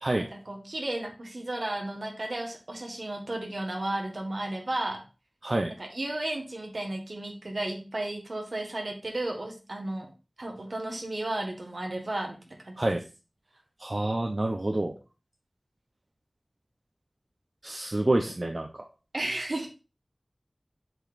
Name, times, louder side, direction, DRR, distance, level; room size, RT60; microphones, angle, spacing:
voice 1, 0.2-5.0 5.7-10.1 10.4-12.4 12.6-12.8 19.1-19.7, right 1 dB, 75° right, 2 dB, 1.6 m, -33 dB
voice 2, 5.4-5.7 12.8-13.0 13.8-14.9 17.6-18.8, right 2 dB, 55° right, 4 dB, 0.7 m, -27 dB
7.5 x 5.0 x 2.6 m, 0.32 s
wide cardioid pair, 40°, 0 cm